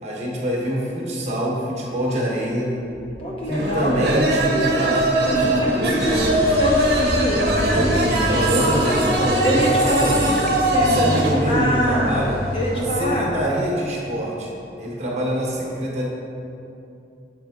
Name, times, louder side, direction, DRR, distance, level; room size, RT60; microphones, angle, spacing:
voice 1, 0.0-2.7 3.5-6.5 7.7-10.2 10.8-12.4 12.7-16.1, equal, 40° right, -4 dB, 1.0 m, -25 dB
sound 1, 3.0-10.5, equal, ahead, 0.3 m, -35 dB
voice 2, 3.2-4.0 5.6-8.0 8.3-9.0 9.4-11.0 11.5-12.2 12.5-13.3, equal, 30° left, -3 dB, 0.7 m, -25 dB
sound 2, 3.5-11.4, right 1 dB, 65° right, 0.8 m, -21 dB
sound 3, 6.0-13.1, left 1 dB, 55° left, 1.0 m, -29 dB
6.9 x 4.3 x 3.5 m, 2.8 s
head